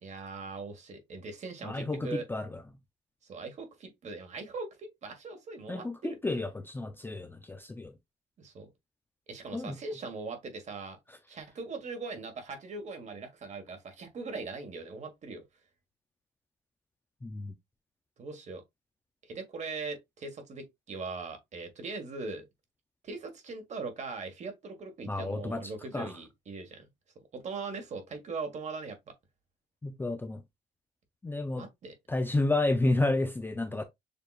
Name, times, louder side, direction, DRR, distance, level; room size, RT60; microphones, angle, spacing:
voice 1, 0.0-2.2 3.2-6.2 8.4-8.7 9.3-11.0 11.3-15.4 18.2-18.6 19.3-22.4 23.0-26.8 27.3-29.0 31.5-31.9, right 4 dB, 45° right, 1.5 m, -40 dB
voice 2, 1.6-2.6 5.7-7.9 9.5-9.8 17.2-17.5 25.1-26.1 29.8-30.4 31.2-31.7 32.1-33.8, left 2 dB, 10° left, 0.5 m, -31 dB
6.8 x 2.9 x 2.4 m
cardioid pair, 110°, 17 cm